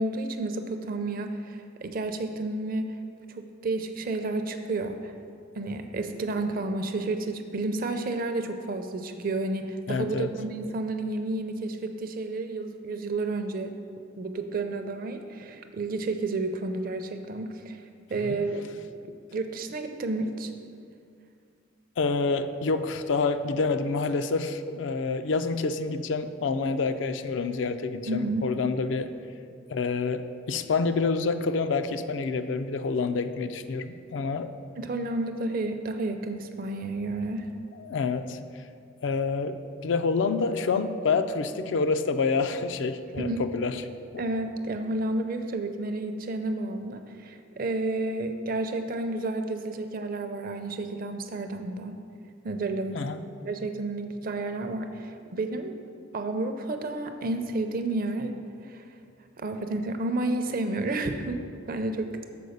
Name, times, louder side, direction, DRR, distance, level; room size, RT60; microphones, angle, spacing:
voice 1, 0.0-3.0 3.3-5.1 5.5-13.7 14.2-18.7 19.3-20.5 28.1-28.5 34.8-37.5 43.2-43.4 44.2-52.0 52.4-53.0 53.4-55.8 56.1-58.4 58.6-58.9 59.4-62.2, right 2 dB, 45° right, 7 dB, 0.5 m, -31 dB
voice 2, 9.9-10.3 18.2-18.4 22.0-29.1 29.7-34.5 37.8-38.4 39.0-43.8 44.1-44.2 52.9-53.2, left 4 dB, 65° left, 9 dB, 0.4 m, -27 dB
6.9 x 4.5 x 6.4 m, 2.3 s
head